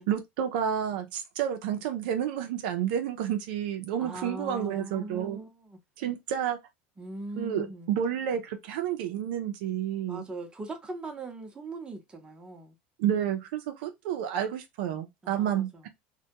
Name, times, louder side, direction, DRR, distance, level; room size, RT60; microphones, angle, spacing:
voice 1, 0.1-5.4 6.0-6.6 7.4-10.2 13.0-15.7, right 9 dB, 75° right, 0.5 m, -30 dB
voice 2, 4.0-5.8 7.0-8.0 10.1-12.8 15.2-15.9, right 2 dB, 15° right, 0.7 m, -40 dB
2.2 x 2.1 x 2.8 m
supercardioid pair, 115°, 5 cm